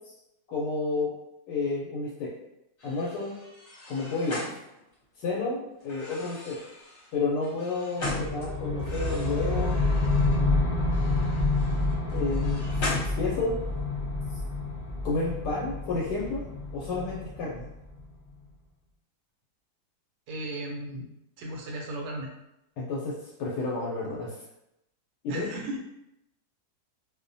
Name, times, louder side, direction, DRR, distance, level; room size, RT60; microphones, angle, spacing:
voice 1, 0.5-1.1 1.5-2.3 2.8-3.4 3.9-4.4 5.2-6.6 7.1-9.8 10.4-10.7 12.1-12.9 13.2-13.6 15.0-16.4 16.7-17.6 22.8-24.3 25.2-25.5, left 3 dB, 85° left, -4 dB, 1.1 m, -31 dB
sound 1, 2.8-5.3 5.8-8.5 8.8-10.4 10.8-13.7, left 1 dB, 50° left, 1.0 m, -39 dB
sound 2, 8.0-18.1, left 2 dB, 25° left, 0.6 m, -28 dB
voice 2, 20.3-21.1 21.4-22.3 25.3-25.8, right 1 dB, 80° right, 0 dB, 1.1 m, -35 dB
2.7 x 2.1 x 2.6 m, 0.86 s
omnidirectional pair, 1.7 m